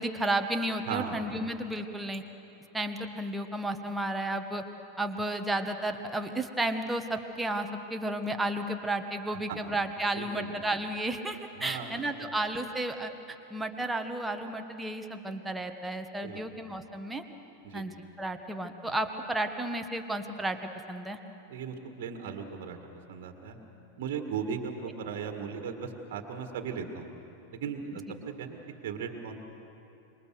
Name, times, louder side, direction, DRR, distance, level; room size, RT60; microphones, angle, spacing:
voice 1, 0.0-2.2 2.7-4.6 5.0-13.1 13.5-17.2 17.7-20.6 20.9-21.2, right 1 dB, 5° right, 5 dB, 1.4 m, -32 dB
voice 2, 0.9-1.2 9.5-9.6 10.1-10.5 11.6-11.9 12.2-12.3 16.2-16.4 17.6-17.8 21.5-22.8 23.1-23.6 24.0-27.1 27.5-28.6 28.8-29.3, right 6 dB, 50° right, 5 dB, 1.9 m, -37 dB
26.5 x 22.5 x 6.6 m, 2.9 s
figure-of-eight pair, 90°, 0 cm